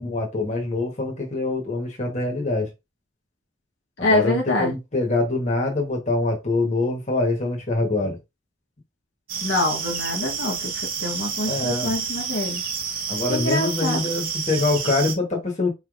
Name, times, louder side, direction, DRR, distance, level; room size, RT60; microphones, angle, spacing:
voice 1, 0.0-2.7 4.0-8.2 11.4-12.0 13.1-15.7, left 2 dB, 35° left, 1.3 m, -24 dB
voice 2, 4.0-4.7 9.4-12.6 13.3-14.0, left 2 dB, 75° left, 1.2 m, -25 dB
sound 1, 9.3-15.1, right 6 dB, 50° right, 0.9 m, -29 dB
4.5 x 3.2 x 2.6 m
head